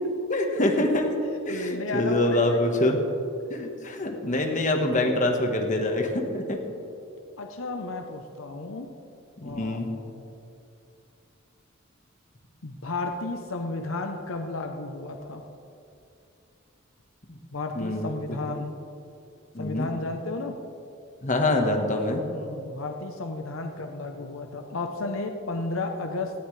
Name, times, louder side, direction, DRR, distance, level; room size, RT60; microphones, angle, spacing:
voice 1, 0.3-1.2 1.5-3.0 3.5-6.6 9.4-9.9 17.3-17.4 17.7-18.4 19.5-19.9 21.2-22.2, left 1 dB, 40° left, 2 dB, 1.4 m, -25 dB
voice 2, 1.5-2.9 7.4-8.9 9.4-10.0 12.6-15.4 17.5-18.8 19.6-20.6 22.2-26.3, left 2 dB, 80° left, 4 dB, 0.9 m, -33 dB
18.0 x 13.5 x 3.3 m, 2.7 s
head